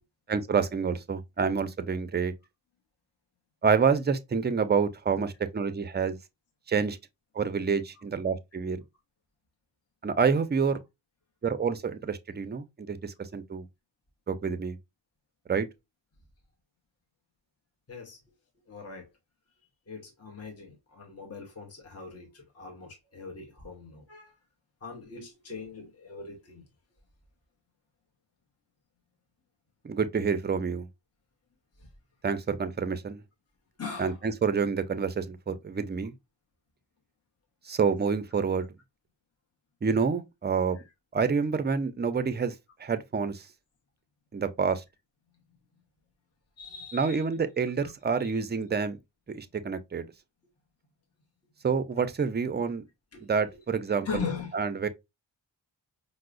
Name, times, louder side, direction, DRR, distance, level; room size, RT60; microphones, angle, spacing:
voice 1, 0.3-2.3 3.6-6.2 6.7-7.0 7.3-8.8 10.0-10.8 11.4-13.7 14.3-14.8 15.5-15.7 29.8-30.9 32.2-33.2 34.0-36.1 37.7-38.7 39.8-40.8 41.1-42.5 42.8-43.4 44.3-44.8 46.9-49.0 49.3-50.1 51.6-52.8 53.2-54.2 54.5-54.9, right 5 dB, 25° right, 0.4 m, -28 dB
voice 2, 17.9-18.2 18.7-19.1 19.9-24.3 24.8-26.7 31.8-31.9 33.8-34.2 40.7-40.9 46.6-47.3 47.8-47.9 48.2-48.3 53.1-53.5 54.0-54.5, left 5 dB, 35° left, 0.9 m, -40 dB
4.5 x 2.0 x 2.4 m
wide cardioid pair, 55°, 45 cm